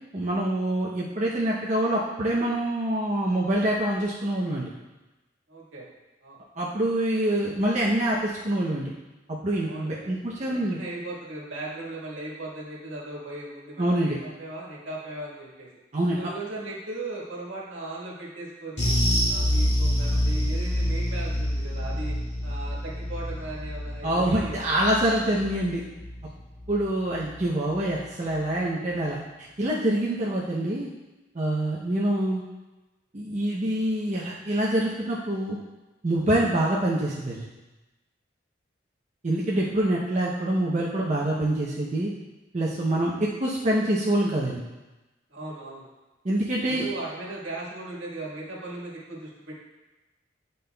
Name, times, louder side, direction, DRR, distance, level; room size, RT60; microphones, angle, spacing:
voice 1, 0.1-4.7 6.6-8.9 9.3-10.8 13.8-14.2 15.9-16.2 24.0-25.8 26.7-29.2 29.6-30.9 31.3-32.4 33.1-35.6 36.0-37.5 39.2-42.1 42.5-44.6 46.2-46.8, right 1 dB, 40° right, -5 dB, 0.6 m, -25 dB
voice 2, 5.5-5.9 6.2-6.4 9.6-10.1 10.5-15.7 16.2-19.0 19.3-22.2 22.4-24.7 43.0-43.2 45.3-45.9 46.7-49.6, right 2 dB, 80° right, -5 dB, 1.5 m, -37 dB
sound 1, 18.8-27.4 27.7-27.9 28.3-28.4, equal, 65° left, 1.9 m, -27 dB
8.4 x 5.3 x 2.2 m, 1.1 s
head